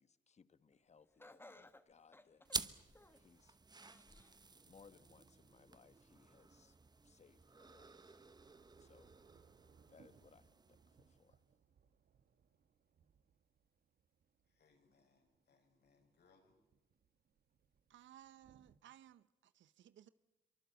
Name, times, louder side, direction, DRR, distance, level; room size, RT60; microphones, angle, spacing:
voice 1, 0.0-2.4 3.1-3.6 4.6-6.8 7.0-8.2 8.8-9.1 9.9-11.4, left 5 dB, 35° left, 14 dB, 1.2 m, -66 dB
Laughter, 1.2-3.3 3.8-4.4 4.9-5.0 6.0-6.1, left 2 dB, 10° left, 1.4 m, -61 dB
sound 1, 2.4-11.4, right 3 dB, 20° right, 1.0 m, -50 dB
Thunder / Rain, 7.1-18.8, right 7 dB, 50° right, 1.4 m, -73 dB
voice 2, 14.4-16.6, left 4 dB, 55° left, 4 dB, 6.6 m, -73 dB
voice 3, 17.9-20.1, right 11 dB, 70° right, 15 dB, 0.8 m, -61 dB
24.0 x 23.5 x 8.1 m, 1.1 s
cardioid pair, 90°, 20 cm